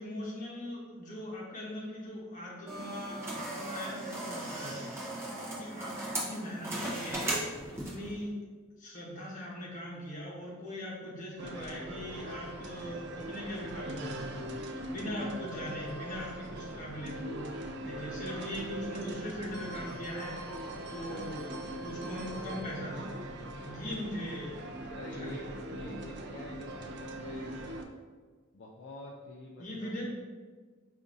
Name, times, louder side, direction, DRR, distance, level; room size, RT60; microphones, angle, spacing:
voice 1, 0.0-5.3 5.6-8.3 8.8-14.6 14.9-20.6 20.9-21.4 21.8-23.3 23.6-24.9 25.2-25.4 29.6-30.0, equal, 40° left, -5 dB, 1.0 m, -41 dB
sound 1, 2.7-8.1, right 1 dB, 15° right, 0.7 m, -37 dB
sound 2, 11.4-27.8, right 1 dB, 55° right, 0.4 m, -41 dB
voice 2, 24.9-27.8 28.5-30.0, left 1 dB, 60° left, -2 dB, 0.4 m, -46 dB
4.7 x 2.5 x 2.6 m, 1.5 s
head